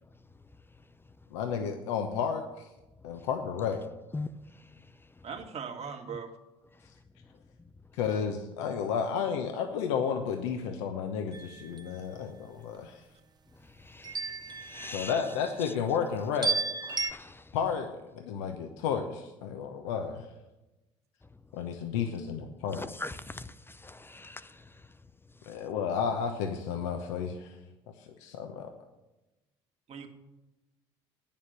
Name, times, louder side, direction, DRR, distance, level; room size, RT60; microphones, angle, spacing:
voice 1, 0.0-1.3 3.0-3.3 4.1-5.3 6.7-7.4 7.9-8.0 13.5-15.3 15.6-15.7 16.9-17.6 21.2-21.5 22.7-25.7, left 2 dB, 15° left, 0.6 m, -45 dB
voice 2, 1.3-2.7 3.0-3.8 7.9-13.0 14.9-16.6 17.5-20.2 21.5-22.8 25.5-27.6 28.0-28.7, left 7 dB, 80° left, 1.0 m, -32 dB
voice 3, 5.2-6.3 29.9-30.1, right 6 dB, 45° right, 1.9 m, -39 dB
sound 1, 11.3-11.9 14.0-15.4 16.4-17.1, right 4 dB, 25° right, 0.9 m, -33 dB
9.6 x 7.2 x 9.2 m
hypercardioid pair, 65°, 15 cm